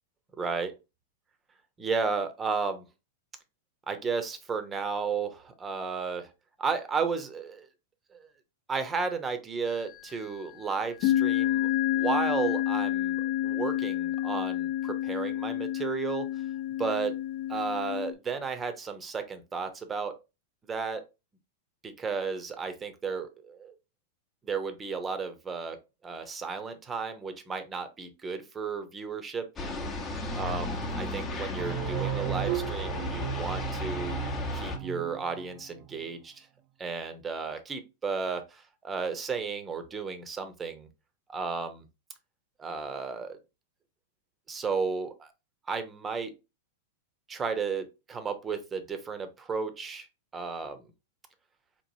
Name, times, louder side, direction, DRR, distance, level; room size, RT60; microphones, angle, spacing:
voice 1, 0.4-0.7 1.8-2.8 3.9-6.3 6.6-7.7 8.1-8.3 8.7-16.3 16.8-17.1 17.5-20.1 20.7-21.0 21.8-23.7 24.4-25.8 26.0-29.5 30.3-34.3 34.5-36.5 36.8-40.9 41.3-41.8 42.6-43.4 44.5-45.3 45.7-46.3 47.3-50.1 50.3-50.8, right 5 dB, 20° right, 9 dB, 0.8 m, -33 dB
sound 1, 9.7-10.2 11.0-18.1, left 13 dB, 55° left, 0.7 m, -29 dB
sound 2, 29.6-34.8, left 1 dB, 25° left, 0.9 m, -34 dB
sound 3, 31.6-36.1, right 14 dB, 40° right, 0.4 m, -36 dB
4.4 x 3.0 x 2.7 m, 0.26 s
hypercardioid pair, 120°, 0 cm